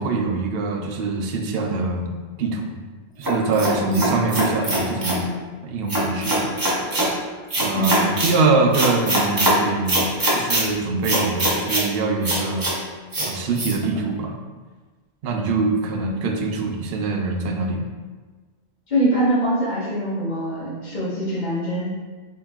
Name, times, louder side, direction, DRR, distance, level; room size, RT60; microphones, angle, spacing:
voice 1, 0.0-2.8 3.2-5.2 5.6-6.5 7.5-10.0 10.3-12.7 13.2-14.3 15.2-17.9, right 3 dB, 65° right, 2 dB, 0.7 m, -24 dB
sound 1, 3.2-5.2 5.9-7.1 7.5-8.3 8.7-9.5 9.9-10.6 11.0-11.9 12.2-12.7 13.1-13.3 13.6-13.7, right 1 dB, 20° right, 0.7 m, -22 dB
voice 2, 3.8-4.2 7.7-8.1 18.9-21.9, right 1 dB, 40° left, -8 dB, 1.3 m, -23 dB
3.7 x 2.6 x 3.6 m, 1.3 s
omnidirectional pair, 1.2 m